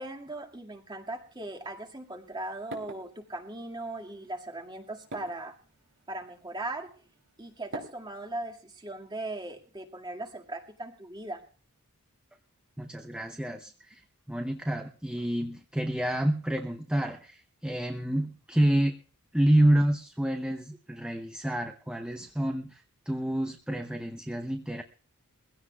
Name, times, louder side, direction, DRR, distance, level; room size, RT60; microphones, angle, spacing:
voice 1, 0.0-5.5 6.1-7.0 7.4-11.4, right 2 dB, 20° right, 3 dB, 2.0 m, -39 dB
sound 1, 1.1-8.5, right 1 dB, 60° right, 3.2 m, -49 dB
voice 2, 12.8-14.0 14.3-18.9 19.3-24.8, right 1 dB, 5° right, 5 dB, 0.7 m, -28 dB
22.5 x 16.0 x 2.3 m, 0.40 s
head